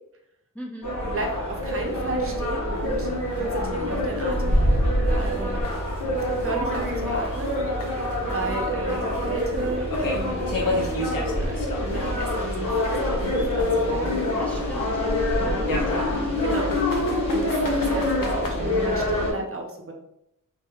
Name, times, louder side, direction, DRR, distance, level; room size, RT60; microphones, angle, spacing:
voice 1, 0.5-0.9 5.4-5.9 14.4-16.5, equal, 5° left, -1 dB, 0.4 m, -42 dB
sound 1, 0.8-19.3, left 1 dB, 60° left, 1.2 m, -25 dB
voice 2, 1.1-4.6 5.0-5.6 6.3-7.6 8.3-10.6 11.4-12.9 13.2-14.4 15.4-15.6 16.4-16.8 17.3-19.9, right 2 dB, 45° right, 2 dB, 0.6 m, -33 dB
sound 2, 1.7-1.8 2.2-2.3 2.8-2.9 3.3-3.4 3.9-4.0 4.5-4.6 5.1-7.5 7.8-12.4 12.8-14.8 15.6-18.5, left 2 dB, 85° left, 0.6 m, -34 dB
3.3 x 3.1 x 2.3 m, 0.79 s
wide cardioid pair, 130°, 33 cm